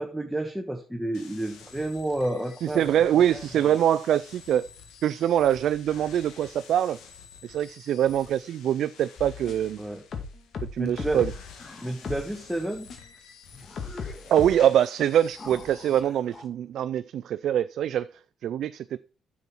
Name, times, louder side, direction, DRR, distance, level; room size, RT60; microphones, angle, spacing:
voice 1, 0.0-2.8 9.8-10.0 10.8-11.2 11.8-12.9, right 1 dB, 5° right, 1.4 m, -30 dB
sound 1, 1.1-16.0, left 6 dB, 85° left, 1.9 m, -50 dB
voice 2, 2.6-4.6 5.0-7.0 7.4-9.8 10.7-11.3 14.3-18.1 18.4-19.0, right 10 dB, 70° right, 0.4 m, -24 dB
sound 2, 9.2-9.7 10.1-11.5 12.0-12.3 12.9-13.0 13.8-14.7, left 5 dB, 55° left, 2.0 m, -36 dB
sound 3, 11.6-12.4 13.1-13.2 13.5-14.7 15.4-16.5, left 2 dB, 30° left, 1.6 m, -46 dB
9.4 x 7.1 x 4.5 m
cardioid pair, 90°, 0 cm